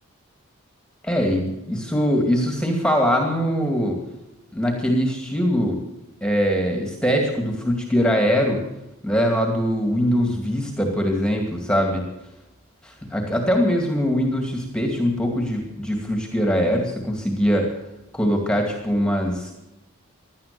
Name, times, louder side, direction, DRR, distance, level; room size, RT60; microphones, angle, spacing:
voice 1, 1.0-4.0 4.5-5.8 6.2-8.6 9.0-12.0 12.8-17.7 18.1-19.5, equal, 5° left, 3 dB, 2.4 m, -22 dB
17.5 x 11.5 x 7.0 m, 0.89 s
head